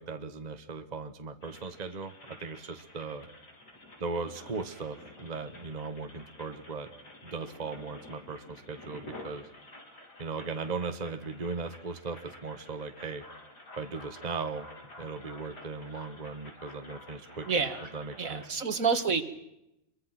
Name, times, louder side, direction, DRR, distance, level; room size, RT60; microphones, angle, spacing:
voice 1, 0.0-3.3 4.0-6.9 7.2-9.5 10.2-13.2 13.8-14.7 15.0-17.5 17.9-18.4, right 4 dB, 25° right, 8 dB, 1.5 m, -38 dB
sound 1, 1.4-18.5, left 1 dB, 90° left, 5.3 m, -50 dB
voice 2, 17.5-17.9 18.2-19.2, right 5 dB, 55° right, 10 dB, 2.0 m, -28 dB
26.5 x 23.5 x 6.0 m, 0.86 s
omnidirectional pair, 1.7 m